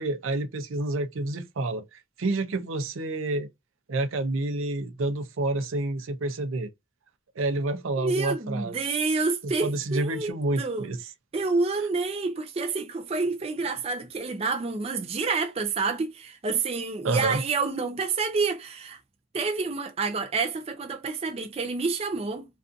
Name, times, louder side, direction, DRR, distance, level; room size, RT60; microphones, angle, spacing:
voice 1, 0.0-3.5 3.9-6.7 7.4-8.8 9.4-11.0 17.0-17.4, right 2 dB, 75° right, 0.6 m, -29 dB
voice 2, 8.0-10.9 11.3-19.0 19.3-22.5, right 4 dB, 30° right, 0.4 m, -28 dB
2.5 x 2.4 x 2.4 m
head